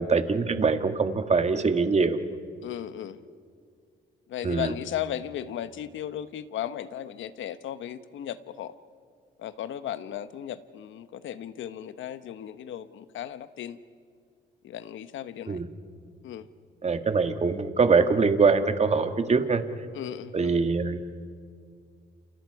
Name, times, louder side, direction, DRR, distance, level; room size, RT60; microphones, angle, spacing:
voice 1, 0.0-2.2 4.4-4.7 15.5-15.7 16.8-19.6 20.3-21.0, right 4 dB, 35° right, 8 dB, 1.7 m, -23 dB
voice 2, 2.6-3.2 4.3-8.7 9.4-13.8 14.6-15.6 16.2-16.5 19.9-20.5, left 10 dB, 75° left, 13 dB, 1.1 m, -36 dB
29.0 x 28.0 x 4.8 m, 2.1 s
cardioid pair, 90°, 20 cm